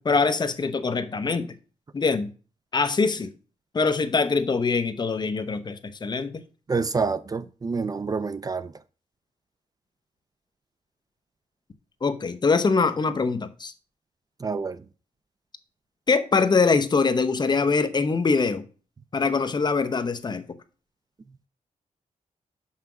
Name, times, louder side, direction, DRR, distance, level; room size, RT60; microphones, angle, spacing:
voice 1, 0.0-1.5 1.9-2.3 2.7-3.3 3.7-6.4 12.0-13.7 16.1-18.6 19.1-20.4, left 4 dB, 35° left, 0.8 m, -23 dB
voice 2, 6.7-8.7 14.4-14.8, right 4 dB, 30° right, 0.4 m, -27 dB
5.7 x 5.7 x 6.1 m
wide cardioid pair, 115°, 13 cm